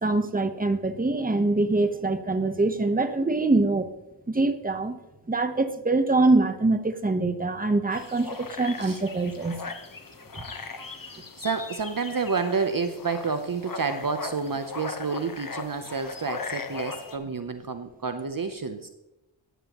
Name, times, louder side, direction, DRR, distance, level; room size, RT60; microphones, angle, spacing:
voice 1, 0.0-3.9 4.3-5.0 5.3-9.6 10.3-10.4, right 2 dB, 20° right, 8 dB, 0.9 m, -24 dB
sound 1, 7.9-17.2, left 4 dB, 45° left, 1.1 m, -38 dB
voice 2, 11.0-18.9, right 5 dB, 45° right, 8 dB, 0.7 m, -30 dB
15.0 x 10.5 x 3.0 m, 0.97 s
wide cardioid pair, 80°, 46 cm